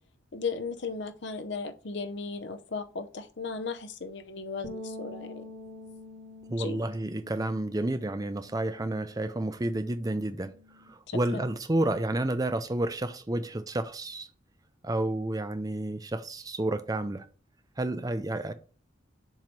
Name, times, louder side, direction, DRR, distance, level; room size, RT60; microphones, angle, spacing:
voice 1, 0.3-5.4 6.6-6.8 11.1-11.4, left 4 dB, 60° left, 0.7 m, -36 dB
sound 1, 4.6-10.9, left 1 dB, 30° left, 1.4 m, -47 dB
voice 2, 6.5-10.5 10.9-14.3 14.8-17.3 17.8-18.5, right 1 dB, 20° right, 0.5 m, -30 dB
7.4 x 3.1 x 5.2 m
head